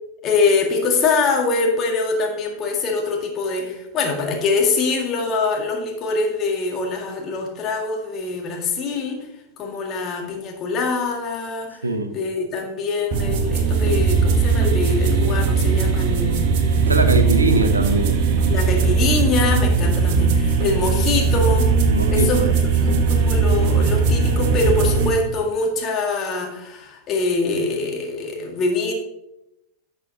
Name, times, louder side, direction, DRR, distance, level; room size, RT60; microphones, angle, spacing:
voice 1, 0.2-9.2 9.6-11.8 12.1-16.5 18.5-21.7 22.1-22.5 22.8-28.9, left 3 dB, 30° left, 1 dB, 1.9 m, -24 dB
voice 2, 11.8-12.1 16.7-18.2 21.9-22.5 23.2-23.3, right 2 dB, 80° right, 8 dB, 0.9 m, -22 dB
sound 1, 13.1-25.1, right 5 dB, 45° right, 1.1 m, -19 dB
11.0 x 6.8 x 2.8 m, 0.89 s
figure-of-eight pair, 90°, 0 cm